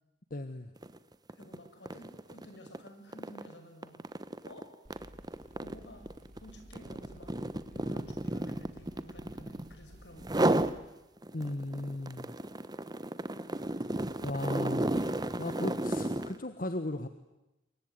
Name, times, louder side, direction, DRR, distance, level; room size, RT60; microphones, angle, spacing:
voice 1, 0.3-0.7 11.3-12.3 13.6-13.7 14.2-17.1, left 1 dB, 55° left, 10 dB, 1.3 m, -37 dB
sound 1, 0.8-1.0 1.3-9.8 10.2-10.8 11.2-16.4, right 1 dB, 25° right, 1.1 m, -33 dB
voice 2, 1.4-4.7 5.6-6.1 6.4-10.5, equal, 75° left, 6 dB, 6.1 m, -52 dB
sound 2, 4.8-10.9, equal, 40° right, 2.8 m, -54 dB
28.0 x 23.0 x 9.3 m, 0.97 s
head